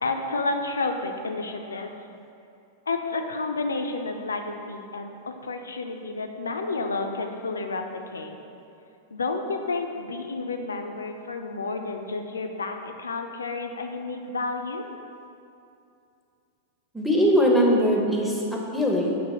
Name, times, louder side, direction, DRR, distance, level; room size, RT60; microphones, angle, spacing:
voice 1, 0.0-1.9 2.9-8.4 9.1-14.8, left 3 dB, 85° left, 5 dB, 0.3 m, -30 dB
voice 2, 16.9-19.2, equal, ahead, -2 dB, 0.6 m, -21 dB
6.2 x 2.5 x 2.9 m, 2.6 s
hypercardioid pair, 100°, 0 cm